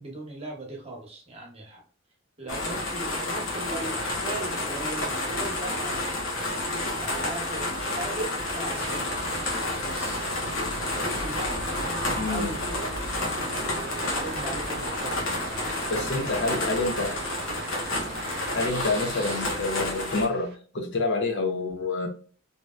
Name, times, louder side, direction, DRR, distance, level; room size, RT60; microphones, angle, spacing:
voice 1, 0.0-1.8 2.4-6.1 6.6-9.3 9.8-10.2 10.9-12.9 13.5-16.4, right 2 dB, 30° right, 1.0 m, -39 dB
sound 1, 2.5-20.3, left 2 dB, 85° left, 0.9 m, -30 dB
sound 2, 8.7-20.6, right 4 dB, 55° right, 0.5 m, -40 dB
voice 2, 12.2-12.5 15.9-17.2 18.5-22.1, left 3 dB, 60° left, 0.7 m, -28 dB
3.2 x 2.8 x 2.3 m
head